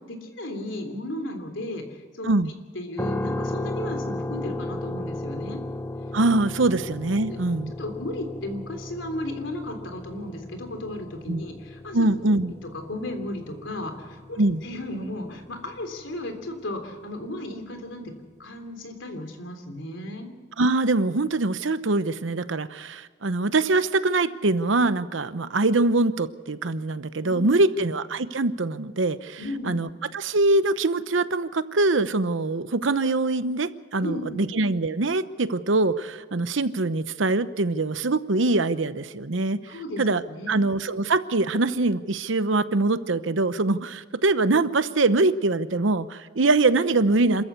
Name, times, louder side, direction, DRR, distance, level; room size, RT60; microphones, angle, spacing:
voice 1, 0.1-2.4 2.7-5.6 6.6-6.8 7.2-7.4 7.8-12.3 12.7-18.1 18.4-20.3 27.2-27.8 29.4-29.7 34.0-34.5 39.7-40.0 40.3-40.6, left 1 dB, 75° left, 6 dB, 3.4 m, -35 dB
sound 1, 3.0-17.0, left 1 dB, 15° left, 0.8 m, -35 dB
voice 2, 6.1-7.7 11.3-11.4 11.9-12.5 14.4-14.6 20.6-39.6 40.0-40.2 40.5-47.4, right 2 dB, 80° right, 13 dB, 0.9 m, -23 dB
27.5 x 14.0 x 8.3 m, 1.4 s
head